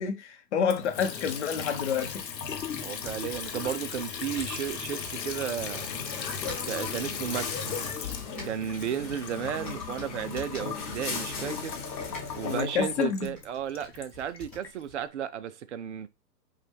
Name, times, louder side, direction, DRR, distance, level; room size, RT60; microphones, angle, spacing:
voice 1, 0.0-2.2 12.4-13.3, left 7 dB, 45° left, 0.8 m, -28 dB
Water tap faucet / Sink (filling or washing) / Trickle dribble, 0.6-14.7, left 7 dB, 85° left, 0.9 m, -37 dB
sound 1, 2.5-15.1, left 2 dB, ahead, 0.6 m, -49 dB
voice 2, 2.8-5.9 6.6-7.8 8.4-11.8 12.3-16.1, right 9 dB, 45° right, 0.5 m, -34 dB
sound 2, 5.6-12.6, left 4 dB, 20° left, 1.1 m, -39 dB
5.4 x 2.3 x 3.4 m
hypercardioid pair, 145°, 49 cm